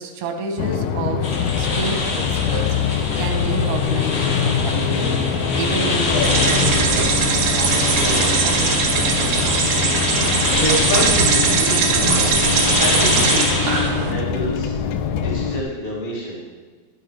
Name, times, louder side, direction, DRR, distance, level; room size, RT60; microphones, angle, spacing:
voice 1, 0.0-8.9, right 3 dB, 90° right, 5 dB, 2.5 m, -30 dB
sound 1, 0.6-15.6, left 7 dB, 80° left, 2.0 m, -24 dB
sound 2, 1.2-13.9, left 2 dB, 50° left, 1.2 m, -25 dB
sound 3, 6.2-14.1, right 5 dB, 60° right, 1.7 m, -20 dB
voice 2, 10.5-12.2 12.6-16.4, equal, 20° right, -6 dB, 1.1 m, -28 dB
11.5 x 9.6 x 3.3 m, 1.5 s
omnidirectional pair, 3.4 m